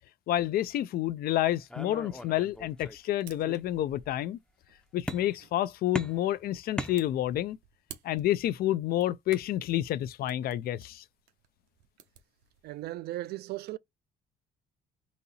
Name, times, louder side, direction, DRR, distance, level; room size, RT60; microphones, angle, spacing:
voice 1, 0.3-4.4 4.9-7.6 8.0-11.0, left 13 dB, 65° left, 0.5 m, -29 dB
sound 1, 1.7-3.1 3.4-4.1 5.1-5.6 5.9-7.5, left 1 dB, 5° left, 0.6 m, -39 dB
sound 2, 2.7-13.0, right 10 dB, 90° right, 1.1 m, -56 dB
voice 2, 12.6-13.8, right 16 dB, 70° right, 0.5 m, -37 dB
4.1 x 2.8 x 4.1 m
cardioid pair, 110°, 17 cm